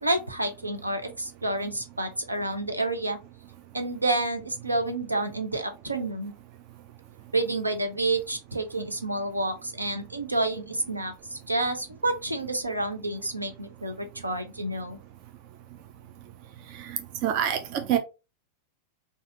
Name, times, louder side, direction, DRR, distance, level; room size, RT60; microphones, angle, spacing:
voice 1, 0.0-3.2 3.7-6.3 7.3-15.0, right 2 dB, 85° right, 0.6 m, -29 dB
voice 2, 17.2-18.0, right 10 dB, 45° right, 0.4 m, -25 dB
4.0 x 2.4 x 2.8 m
figure-of-eight pair, 90°, 0 cm